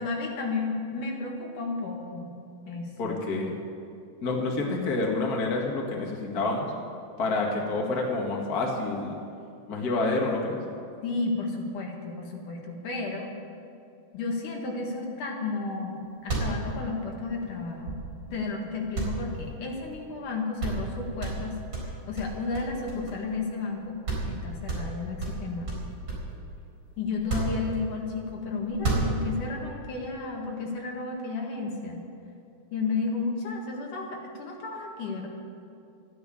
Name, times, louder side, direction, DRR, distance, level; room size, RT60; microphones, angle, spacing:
voice 1, 0.0-2.3 2.6-3.2 11.0-13.3 14.1-18.0 18.3-24.0 24.3-25.7 27.0-32.0 32.7-35.3, left 3 dB, 60° left, 0 dB, 3.1 m, -32 dB
voice 2, 3.0-3.5 4.2-6.7 7.2-9.1 9.7-10.6, left 3 dB, 35° left, -1 dB, 1.7 m, -28 dB
sound 1, 15.9-16.0 16.2-18.4 18.9-20.0 20.3-20.4 20.6-20.9 21.2-23.4 23.7-23.8 24.0-24.3 24.7-26.4 27.1-28.1 28.7-29.5, right 3 dB, 35° right, 4.9 m, -31 dB
14.0 x 10.5 x 8.7 m, 2.6 s
omnidirectional pair, 4.2 m